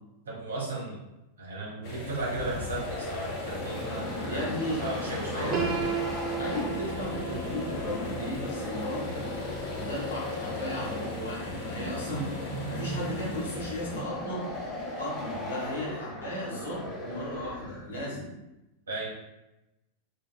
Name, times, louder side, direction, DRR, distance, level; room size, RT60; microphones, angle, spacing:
voice 1, 0.3-1.0 1.4-4.5 4.8-5.7 18.9-19.1, right 2 dB, 70° right, -4 dB, 0.8 m, -35 dB
sound 1, 1.8-14.0, left 3 dB, 40° left, 0.5 m, -39 dB
sound 2, 2.0-18.0, left 1 dB, 10° left, 0.9 m, -37 dB
voice 2, 3.9-4.8 5.3-5.8 6.4-9.3 9.7-12.3 12.7-14.5 15.0-18.3, equal, 65° left, -4 dB, 1.0 m, -35 dB
Piano, 5.5-11.4, right 8 dB, 30° right, 0.4 m, -37 dB
2.8 x 2.5 x 2.2 m, 0.95 s
figure-of-eight pair, 90°, 0 cm